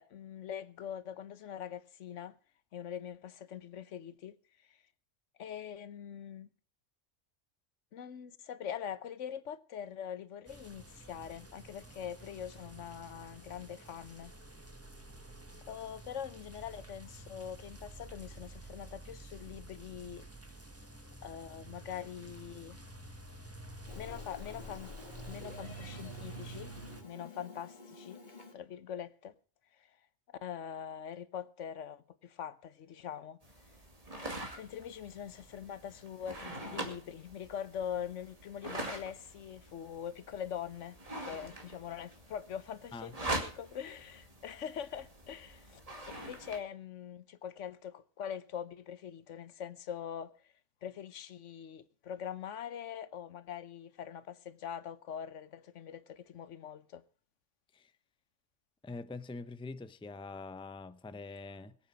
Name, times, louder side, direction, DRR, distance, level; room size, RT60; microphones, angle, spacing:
voice 1, 0.0-2.4 2.7-4.3 4.7-4.8 5.4-6.5 7.9-14.3 15.7-20.3 21.2-22.8 23.9-24.9 25.3-26.7 27.0-28.2 28.5-29.3 29.8-30.0 30.3-33.4 34.6-41.0 41.2-45.8 46.1-50.4 50.8-57.0, left 9 dB, 85° left, 1.2 m, -43 dB
sound 1, 10.5-27.0, right 2 dB, 10° right, 1.5 m, -50 dB
Meow, 23.9-28.5, left 3 dB, 40° left, 2.0 m, -49 dB
sound 2, 33.4-46.6, right 1 dB, 30° right, 2.4 m, -44 dB
voice 2, 58.8-61.8, left 3 dB, 5° left, 0.5 m, -44 dB
21.5 x 8.6 x 5.1 m
omnidirectional pair, 1.2 m